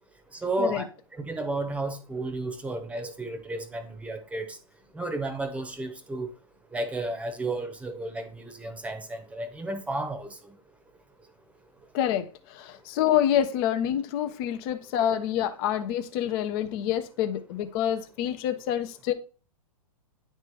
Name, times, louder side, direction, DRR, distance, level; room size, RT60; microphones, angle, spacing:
voice 1, 0.4-0.8 1.2-4.6 4.9-6.3 6.7-10.4, right 2 dB, 5° right, 1.0 m, -32 dB
voice 2, 11.9-12.3 12.6-19.1, left 10 dB, 40° left, 0.7 m, -27 dB
9.6 x 3.3 x 4.6 m
hypercardioid pair, 120°, 19 cm